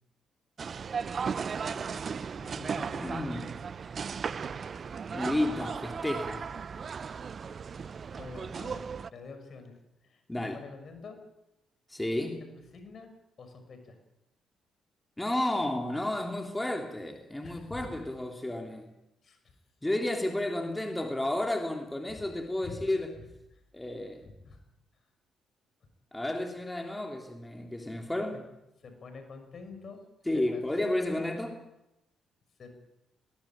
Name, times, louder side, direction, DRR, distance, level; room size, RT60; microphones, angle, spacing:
sound 1, 0.6-9.1, right 6 dB, 50° right, 0.7 m, -36 dB
voice 1, 1.5-2.9 8.2-9.8 10.0-11.2 12.5-13.1 13.4-14.0 17.4-18.0 19.2-19.6 22.6-22.8 23.2-23.3 24.2-24.6 28.3-28.4 28.8-30.0 30.3-31.2 32.6-32.7, left 4 dB, 55° left, 7 dB, 6.2 m, -47 dB
voice 2, 2.9-3.6 4.3-4.5 5.1-6.5 10.3-10.6 11.9-12.4 15.2-18.9 19.8-23.1 23.7-24.2 26.1-28.4 30.3-31.6, left 1 dB, 15° left, 3 dB, 3.2 m, -32 dB
20.0 x 19.5 x 9.0 m, 0.92 s
hypercardioid pair, 45°, 0 cm